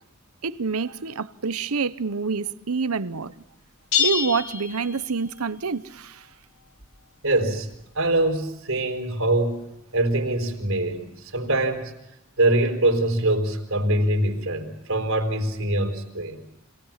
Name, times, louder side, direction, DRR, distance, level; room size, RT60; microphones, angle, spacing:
voice 1, 0.4-3.3 4.0-6.3, right 5 dB, 85° right, 0.9 m, -27 dB
sound 1, 3.9-5.5, left 7 dB, 70° left, 2.9 m, -26 dB
voice 2, 7.2-7.7 7.9-9.6 9.9-11.9 12.4-16.4, right 1 dB, 70° right, 4.4 m, -23 dB
27.0 x 18.5 x 7.4 m
head